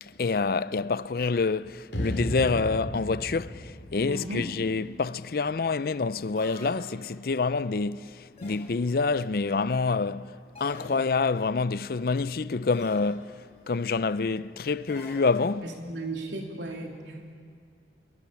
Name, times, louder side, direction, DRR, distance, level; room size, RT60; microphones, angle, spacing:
voice 1, 0.0-15.6, left 4 dB, 55° left, 0.5 m, -27 dB
sound 1, 1.9-5.1, equal, 85° left, 3.3 m, -34 dB
voice 2, 4.1-4.5 15.6-17.2, right 2 dB, 90° right, 3.5 m, -35 dB
sound 2, 6.4-7.3 8.4-9.1 10.5-11.4 12.7-13.2 14.9-15.8, left 1 dB, 35° left, 7.0 m, -47 dB
26.0 x 22.5 x 7.1 m
head